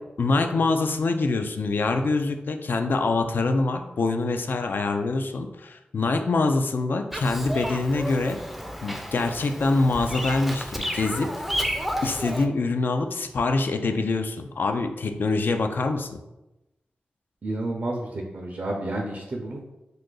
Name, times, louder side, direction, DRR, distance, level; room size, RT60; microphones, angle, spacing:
voice 1, 0.2-8.4 8.8-11.3 12.0-16.2, left 3 dB, 65° left, 6 dB, 0.3 m, -25 dB
Bird vocalization bird call bird song, 7.1-12.5, equal, 5° right, 0.4 m, -31 dB
voice 2, 17.4-19.6, right 1 dB, 55° right, 0 dB, 0.5 m, -30 dB
2.7 x 2.4 x 3.8 m, 0.98 s
cardioid pair, 50°, 4 cm